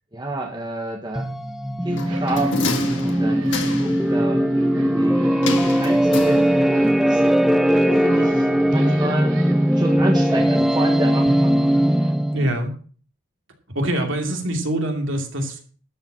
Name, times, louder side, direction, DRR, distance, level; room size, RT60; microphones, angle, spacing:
voice 1, 0.1-1.3 1.8-5.3 5.6-7.3 8.0-9.4 9.8-11.5, right 1 dB, 20° right, 1 dB, 1.5 m, -29 dB
sound 1, 1.1-12.5, equal, ahead, 0.5 m, -19 dB
sound 2, 1.9-12.1, right 2 dB, 80° right, 3.3 m, -40 dB
sound 3, 2.0-4.1 5.4-6.9 7.2-7.3, left 3 dB, 60° left, 1.9 m, -29 dB
voice 2, 12.3-12.7 13.7-15.6, right 1 dB, 65° right, 3 dB, 2.8 m, -24 dB
13.0 x 5.8 x 7.5 m, 0.43 s
head